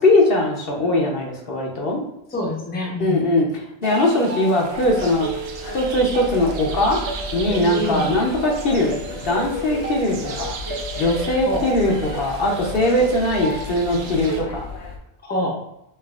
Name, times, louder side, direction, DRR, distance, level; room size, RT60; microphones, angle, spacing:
voice 1, 0.0-2.0 3.0-3.5 3.8-5.3 5.7-7.0 7.3-10.5 11.0-14.6, left 1 dB, 60° left, -1 dB, 1.0 m, -20 dB
voice 2, 2.3-3.3 7.6-8.1 11.4-11.7 15.2-15.6, left 1 dB, 10° left, -2 dB, 0.7 m, -26 dB
sound 1, 3.8-14.4, right 4 dB, 75° right, 0.9 m, -33 dB
sound 2, 4.7-15.0, left 2 dB, 85° left, 1.0 m, -34 dB
5.7 x 2.5 x 2.4 m, 0.84 s
omnidirectional pair, 1.1 m